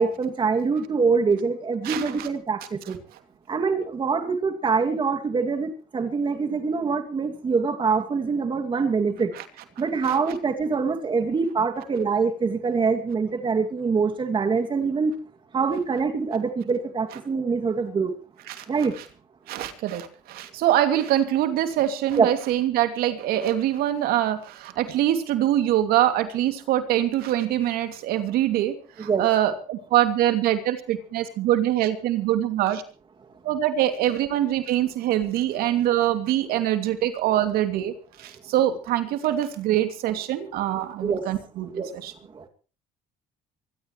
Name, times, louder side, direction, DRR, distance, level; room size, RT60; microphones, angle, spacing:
voice 1, 0.0-3.0 3.5-9.3 9.8-15.1 15.5-18.1 18.7-18.9 22.2-22.3 29.0-29.3 41.0-41.2 41.7-41.9 42.3-42.5, right 5 dB, 30° right, 5 dB, 2.5 m, -24 dB
voice 2, 1.8-2.3 9.4-9.5 10.0-10.2 18.5-18.6 19.5-32.8 33.4-42.1, right 12 dB, 70° right, 8 dB, 2.7 m, -24 dB
24.5 x 16.0 x 3.2 m, 0.37 s
cardioid pair, 100°, 16 cm